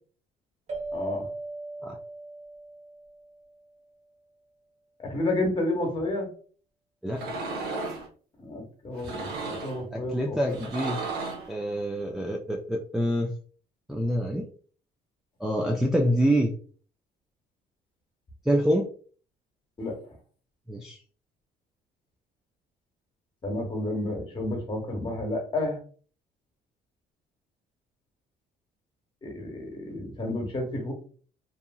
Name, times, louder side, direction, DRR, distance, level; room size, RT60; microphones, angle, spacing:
sound 1, 0.7-3.7, right 2 dB, 45° right, 1.0 m, -38 dB
voice 1, 0.9-1.3 5.0-6.3 8.4-10.6 19.8-20.0 23.4-25.8 29.2-30.9, left 1 dB, 30° left, 2 dB, 1.0 m, -31 dB
sound 2, 7.1-8.1 8.9-9.8 10.5-11.5, right 3 dB, 75° right, 0.6 m, -34 dB
voice 2, 9.9-11.0 11.5-13.3 13.9-14.5 15.4-16.5 18.5-18.9 20.7-21.0, equal, ahead, -2 dB, 0.3 m, -26 dB
2.9 x 2.4 x 2.3 m, 0.42 s
cardioid pair, 110°, 17 cm